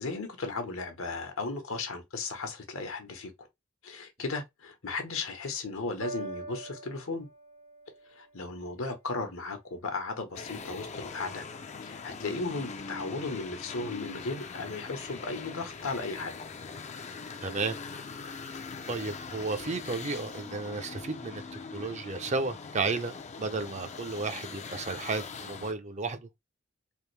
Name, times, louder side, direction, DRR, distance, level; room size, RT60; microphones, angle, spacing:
voice 1, 0.0-3.5 3.8-7.3 8.2-11.4 11.8-16.3, left 3 dB, 75° left, 1.0 m, -36 dB
Piano, 6.0-12.6 13.4-13.5, right 2 dB, 80° right, 1.7 m, -47 dB
sound 1, 10.3-25.7, left 5 dB, 35° left, 0.5 m, -42 dB
voice 2, 17.4-17.7 18.9-21.4 21.7-26.3, right 3 dB, 35° right, 0.6 m, -33 dB
3.5 x 2.6 x 3.2 m
head